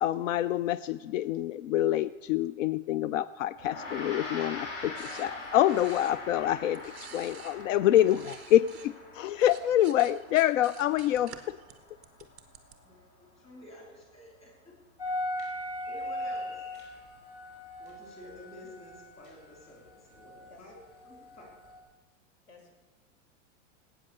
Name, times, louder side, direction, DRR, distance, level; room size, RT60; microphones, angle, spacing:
voice 1, 0.0-11.6, left 12 dB, 90° left, 17 dB, 0.5 m, -26 dB
Gong, 3.6-13.1, left 2 dB, 35° left, 4.1 m, -43 dB
sound 1, 5.0-8.9 9.2-12.8, right 8 dB, ahead, 0.3 m, -51 dB
voice 2, 12.8-14.7 15.9-16.6 17.8-20.7 21.0-21.5, left 1 dB, 15° left, -1 dB, 3.2 m, -51 dB
sound 2, 15.0-20.5 21.0-21.8, left 1 dB, 50° left, 4.7 m, -38 dB
voice 3, 20.3-20.6 22.5-22.7, left 3 dB, 70° left, 4 dB, 4.3 m, -55 dB
18.5 x 8.9 x 6.7 m, 1.4 s
supercardioid pair, 175°, 37 cm